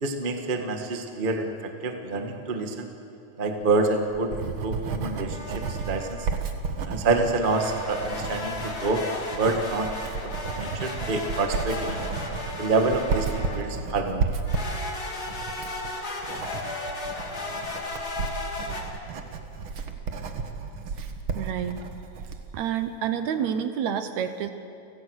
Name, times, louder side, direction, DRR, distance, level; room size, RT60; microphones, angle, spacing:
voice 1, 0.0-1.5 1.8-2.9 3.4-5.4 5.7-6.3 6.9-9.0 9.3-12.0 12.6-14.3, right 3 dB, 25° right, 4 dB, 1.0 m, -27 dB
Writing, 3.7-22.5, right 5 dB, 50° right, 1.7 m, -33 dB
sound 1, 5.3-6.3 7.4-13.8 14.5-18.8, left 2 dB, 30° left, 2.6 m, -35 dB
voice 2, 21.4-21.8 22.5-24.5, right 8 dB, 70° right, 9 dB, 2.1 m, -28 dB
29.5 x 17.0 x 6.4 m, 2.6 s
omnidirectional pair, 3.5 m